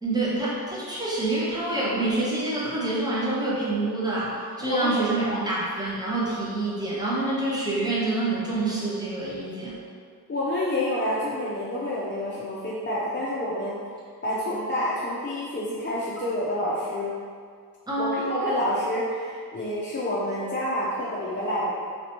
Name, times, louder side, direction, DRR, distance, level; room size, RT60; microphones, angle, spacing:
voice 1, 0.0-9.8 17.9-18.3, right 2 dB, 10° right, -7 dB, 0.8 m, -27 dB
voice 2, 4.6-5.4 10.3-13.8 14.2-17.1 18.0-21.7, left 1 dB, 30° left, -8 dB, 0.5 m, -28 dB
3.3 x 2.9 x 2.9 m, 2.1 s
wide cardioid pair, 55°, 39 cm